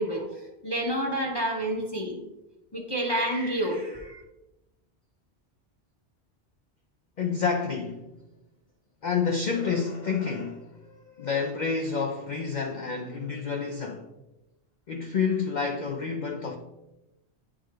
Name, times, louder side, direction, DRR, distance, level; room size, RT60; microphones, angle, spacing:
voice 1, 0.0-2.3 2.7-4.2, right 1 dB, 25° left, 0.8 m, -29 dB
voice 2, 7.2-8.1 9.0-14.1 14.9-16.6, left 5 dB, 55° left, 0.6 m, -29 dB
9.9 x 3.6 x 3.3 m
omnidirectional pair, 1.1 m